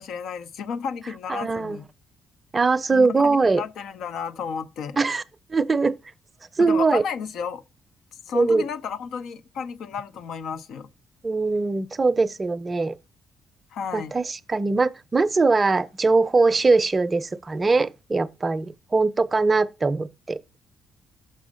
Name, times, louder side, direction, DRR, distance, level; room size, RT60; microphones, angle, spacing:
voice 1, 0.0-1.9 2.9-5.0 6.6-7.6 8.3-10.9 13.7-14.1, left 6 dB, 75° left, 0.7 m, -32 dB
voice 2, 1.3-1.8 2.5-3.6 5.0-5.2 5.5-6.0 6.6-7.0 8.3-8.7 11.2-13.0 13.9-20.4, right 3 dB, 30° right, 0.5 m, -21 dB
6.3 x 5.3 x 5.1 m
cardioid pair, 90°, 0 cm